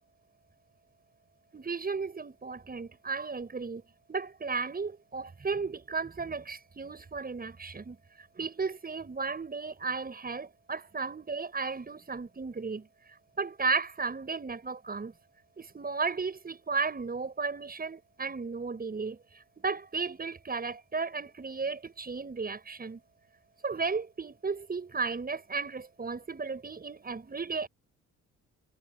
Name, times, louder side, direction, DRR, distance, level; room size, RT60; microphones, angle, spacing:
voice 1, 1.5-3.8 4.1-8.0 8.4-12.9 13.4-15.1 15.6-19.2 19.6-23.0 23.6-27.7, right 4 dB, 30° right, 7.6 m, -34 dB
cardioid pair, 90°, 30 cm